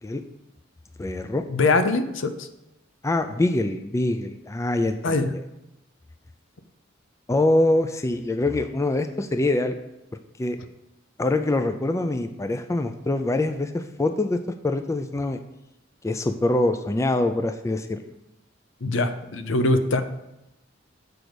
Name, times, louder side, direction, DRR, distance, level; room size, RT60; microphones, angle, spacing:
voice 1, 1.0-1.4 3.0-5.2 7.3-9.8 10.4-10.6 11.2-15.4 16.0-18.1, left 2 dB, 15° left, 8 dB, 0.4 m, -24 dB
voice 2, 1.5-2.5 5.0-5.3 18.8-20.0, left 2 dB, 70° left, 9 dB, 0.7 m, -22 dB
6.8 x 5.0 x 6.1 m, 0.92 s
head